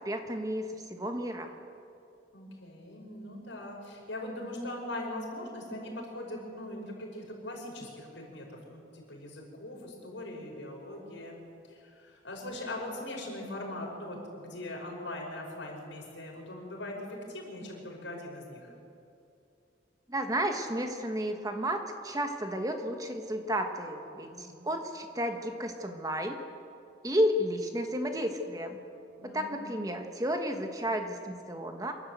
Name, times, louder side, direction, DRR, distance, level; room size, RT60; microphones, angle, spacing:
voice 1, 0.0-1.5 20.1-26.4 27.0-28.8 29.2-31.9, equal, 20° right, 5 dB, 1.3 m, -32 dB
voice 2, 2.3-11.4 11.7-17.0 17.3-18.7 24.2-24.6 29.2-29.8, left 1 dB, 80° left, -1 dB, 5.6 m, -41 dB
27.0 x 12.0 x 8.1 m, 2.6 s
head